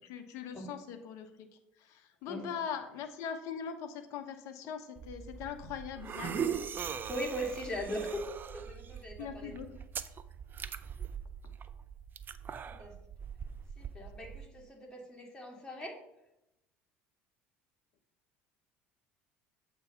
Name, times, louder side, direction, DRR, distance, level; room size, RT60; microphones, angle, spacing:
voice 1, 0.1-1.5 1.8-6.6 9.2-9.8, left 7 dB, 65° left, 8 dB, 0.9 m, -41 dB
sound 1, 5.0-14.5, right 7 dB, 35° right, 0.4 m, -41 dB
voice 2, 7.1-8.2 8.5-9.6 12.6-12.9 13.8-15.9, equal, 15° left, -1 dB, 2.5 m, -39 dB
7.8 x 3.4 x 5.8 m, 0.88 s
hypercardioid pair, 70°, 6 cm